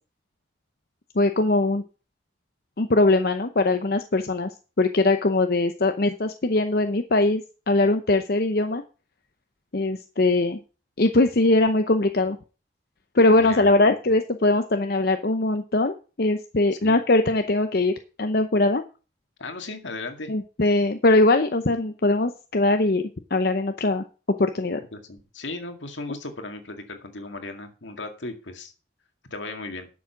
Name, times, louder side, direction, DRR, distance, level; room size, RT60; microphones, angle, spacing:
voice 1, 1.1-1.8 2.8-4.5 4.8-7.4 7.7-8.8 9.7-10.6 11.0-12.4 13.1-18.8 20.3-23.0 23.3-24.0 24.4-24.8, left 2 dB, 50° left, 8 dB, 0.7 m, -21 dB
voice 2, 13.4-13.7 16.8-17.0 19.4-20.3 24.9-28.7 29.3-29.9, left 2 dB, 75° left, 6 dB, 2.1 m, -36 dB
11.5 x 7.2 x 5.8 m, 0.34 s
head